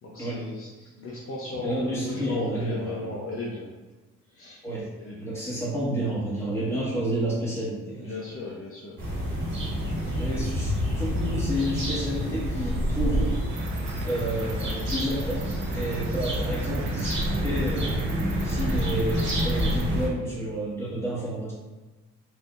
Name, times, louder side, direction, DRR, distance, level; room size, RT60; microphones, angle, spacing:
voice 1, 0.0-3.7 4.3-4.6 5.0-5.3 8.0-9.0, left 3 dB, 50° left, -4 dB, 0.7 m, -35 dB
voice 2, 1.5-3.1 4.6-4.9 5.2-8.1 10.2-13.4 14.0-18.1 18.4-21.5, right 1 dB, 10° left, -7 dB, 1.3 m, -30 dB
sound 1, 9.0-20.1, equal, 40° right, 1.4 m, -28 dB
Cricket, 13.5-19.9, right 4 dB, 70° right, 0.6 m, -43 dB
3.3 x 2.7 x 2.5 m, 1.2 s
cardioid pair, 90°, 30 cm